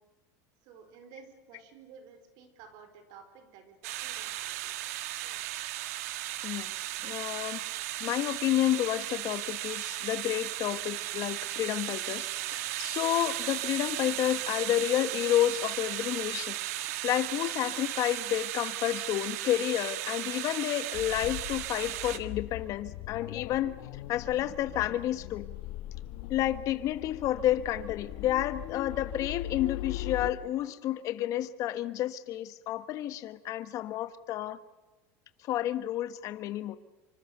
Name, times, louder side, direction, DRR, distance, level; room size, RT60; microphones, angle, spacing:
voice 1, 0.6-4.9 5.2-5.4, right 6 dB, 60° right, 8 dB, 4.6 m, -53 dB
sound 1, 3.8-22.2, right 15 dB, 80° right, 1.7 m, -36 dB
voice 2, 7.0-7.6 8.0-16.6 17.0-23.8 24.1-25.4 26.3-34.6 35.5-36.8, left 13 dB, 45° left, 12 dB, 1.3 m, -30 dB
sound 2, 20.9-30.3, left 15 dB, 65° left, 1.3 m, -40 dB
26.0 x 25.5 x 6.8 m, 1.2 s
supercardioid pair, 145°, 8 cm